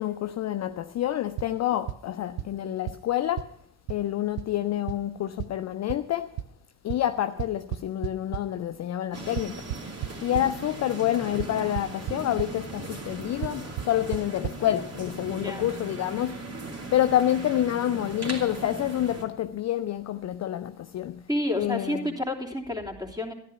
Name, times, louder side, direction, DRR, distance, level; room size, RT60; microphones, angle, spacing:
voice 1, 0.0-3.5 3.9-6.3 6.8-9.6 10.2-16.4 16.9-21.2 21.6-22.0, left 12 dB, 35° left, 0.6 m, -28 dB
sound 1, 1.4-1.5 1.9-2.0 2.4-2.5 2.9-3.0 3.4-3.5 3.9-4.0 4.4-4.5 4.9-5.0 5.4-5.5 5.9-6.0 6.4-6.5 6.9-7.0 7.4-8.4 9.4-10.5 11.4-11.5 11.8-12.1 12.4-12.5 13.4-13.5 13.8-13.9 14.1-14.2 14.4-14.5, right 13 dB, 55° right, 0.6 m, -30 dB
sound 2, 9.1-19.2, right 2 dB, 30° right, 2.6 m, -38 dB
voice 2, 21.3-23.3, left 1 dB, 10° right, 3.0 m, -30 dB
13.5 x 11.0 x 6.0 m
figure-of-eight pair, 40°, 47 cm